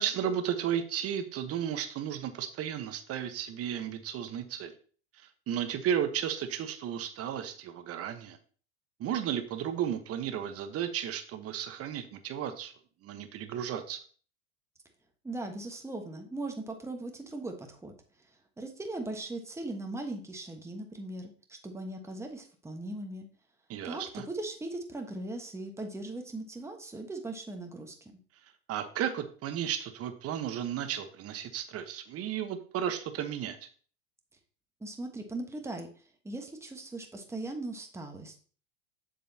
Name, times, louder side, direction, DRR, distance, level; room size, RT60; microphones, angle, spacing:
voice 1, 0.0-4.7 5.5-8.4 9.0-12.7 13.0-14.0 23.7-24.2 28.7-33.6, right 9 dB, 40° right, 8 dB, 1.1 m, -34 dB
voice 2, 15.2-17.9 18.6-23.3 23.8-28.1 34.8-35.9 36.2-38.4, right 2 dB, 5° right, 3 dB, 1.3 m, -39 dB
7.5 x 6.8 x 2.8 m, 0.42 s
hypercardioid pair, 100°, 36 cm